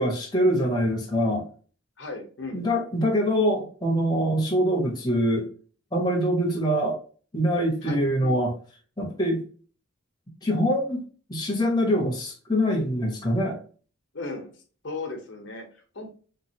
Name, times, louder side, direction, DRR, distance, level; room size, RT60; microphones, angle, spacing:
voice 1, 0.0-1.5 2.5-5.5 5.9-7.0 7.3-8.5 9.0-9.4 10.4-13.6, equal, 20° left, -1 dB, 0.9 m, -24 dB
voice 2, 2.0-2.6 7.8-8.4 14.1-14.5 14.8-16.1, left 3 dB, 60° left, 3 dB, 0.9 m, -36 dB
3.9 x 3.0 x 2.8 m, 0.40 s
head